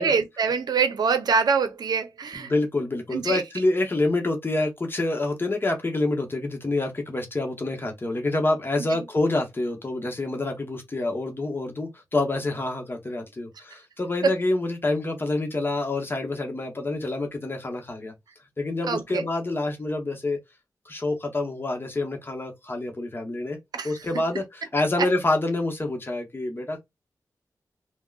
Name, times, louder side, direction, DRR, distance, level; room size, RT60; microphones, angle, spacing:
voice 1, 0.0-2.5 3.1-3.4 14.2-14.4 18.9-19.3 23.7-23.9 25.0-25.1, right 5 dB, 85° right, 0.6 m, -24 dB
voice 2, 2.3-18.1 18.6-20.4 20.9-23.6 23.8-26.8, left 2 dB, 35° left, 0.9 m, -27 dB
3.5 x 2.1 x 2.3 m
wide cardioid pair, 85°, 7 cm